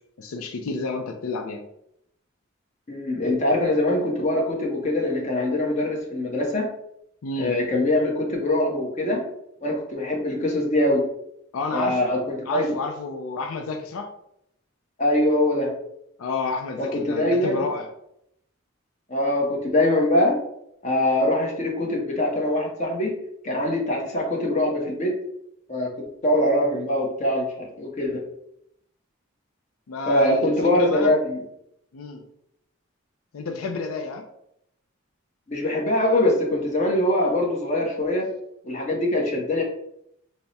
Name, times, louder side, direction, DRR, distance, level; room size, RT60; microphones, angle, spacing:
voice 1, 0.2-1.6 7.2-7.5 11.5-12.1 12.5-14.1 16.2-17.9 29.9-31.1 31.9-32.2 33.3-34.3, left 3 dB, 85° left, 4 dB, 0.4 m, -30 dB
voice 2, 2.9-6.7 7.4-9.2 9.6-11.0 11.7-12.7 15.0-15.7 16.8-17.6 19.1-20.4 20.8-23.1 23.4-25.1 25.7-25.9 26.2-28.2 30.1-31.4 35.5-38.3 38.6-39.6, left 1 dB, 35° left, -2 dB, 0.8 m, -23 dB
3.4 x 2.1 x 4.0 m, 0.75 s
head